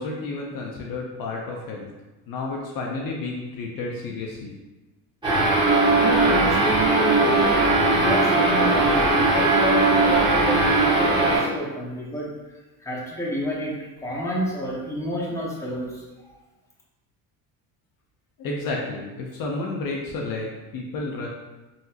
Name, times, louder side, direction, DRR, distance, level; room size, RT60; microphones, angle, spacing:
voice 1, 0.0-1.9 2.3-4.5 18.4-21.3, left 3 dB, 55° left, -2 dB, 0.6 m, -31 dB
sound 1, 5.2-11.4, right 2 dB, 10° right, 1.3 m, -19 dB
voice 2, 6.0-12.3 12.8-13.7 14.0-15.9, equal, 5° left, -5 dB, 0.8 m, -28 dB
3.8 x 2.0 x 2.7 m, 1.1 s
supercardioid pair, 90°, 42 cm